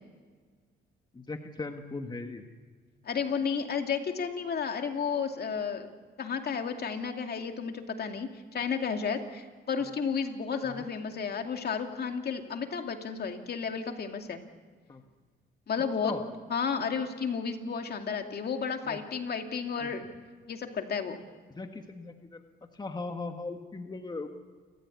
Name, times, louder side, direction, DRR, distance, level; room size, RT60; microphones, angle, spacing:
voice 1, 1.1-2.4 9.8-9.9 10.6-10.9 14.9-15.0 16.0-16.2 18.8-19.0 19.8-19.9 21.5-22.4 22.7-24.3, left 3 dB, 20° left, 5 dB, 1.7 m, -38 dB
voice 2, 3.0-5.9 6.2-14.4 15.7-16.1 16.5-20.1 20.5-21.2, left 6 dB, 55° left, 4 dB, 2.5 m, -32 dB
29.0 x 14.0 x 8.6 m, 1.5 s
cardioid pair, 90°, 20 cm